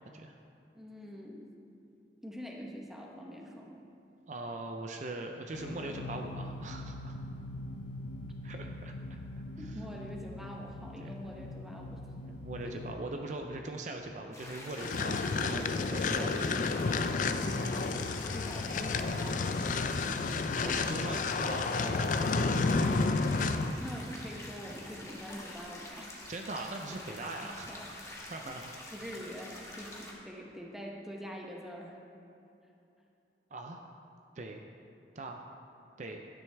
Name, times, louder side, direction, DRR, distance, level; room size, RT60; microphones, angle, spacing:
voice 1, 0.7-1.5 2.2-3.9 9.6-12.1 12.6-12.8 16.0-16.6 17.4-19.6 23.6-26.1 26.9-27.9 28.9-32.0, equal, ahead, -1 dB, 1.0 m, -45 dB
voice 2, 4.3-7.2 8.4-8.9 9.6-9.8 11.0-11.1 12.2-16.4 20.0-23.0 26.3-27.7 28.3-28.7 33.5-33.9 34.4-34.6 35.2-35.4 36.0-36.2, right 2 dB, 45° right, 3 dB, 0.5 m, -41 dB
sound 1, 5.5-14.2, left 1 dB, 90° left, 0.6 m, -43 dB
sound 2, 14.3-30.1, left 1 dB, 20° left, 1.3 m, -47 dB
sound 3, 14.8-23.8, left 4 dB, 45° left, 0.4 m, -30 dB
12.0 x 9.6 x 3.5 m, 2.7 s
head